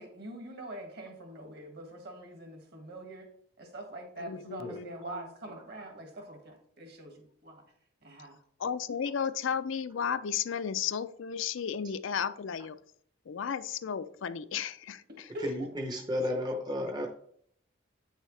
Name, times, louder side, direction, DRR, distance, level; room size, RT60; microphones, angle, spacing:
voice 1, 0.0-3.3 3.6-7.6 8.0-8.4 15.1-15.7, right 1 dB, 50° right, 3 dB, 1.8 m, -44 dB
voice 2, 4.2-4.9 8.6-12.8 13.3-15.0, left 7 dB, 70° left, 13 dB, 0.4 m, -33 dB
voice 3, 15.4-17.1, left 1 dB, 20° right, 3 dB, 0.7 m, -33 dB
9.0 x 6.4 x 3.3 m, 0.64 s
head